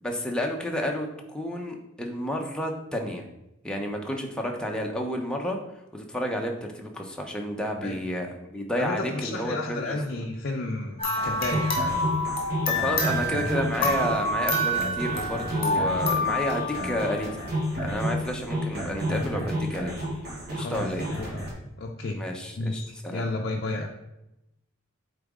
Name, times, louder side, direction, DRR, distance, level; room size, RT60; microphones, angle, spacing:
voice 1, 0.0-3.2 3.6-5.6 5.9-10.0 12.7-17.4 17.8-19.9 20.5-21.0 22.2-23.2, equal, 5° left, 1 dB, 0.8 m, -31 dB
voice 2, 8.8-11.8 20.5-21.5 21.8-22.2 22.6-23.9, left 2 dB, 50° left, 0 dB, 0.5 m, -32 dB
sound 1, 11.0-17.5, left 1 dB, 30° left, 1.7 m, -28 dB
sound 2, 11.2-21.5, equal, 50° right, 1.8 m, -31 dB
8.7 x 4.0 x 3.6 m, 0.90 s
head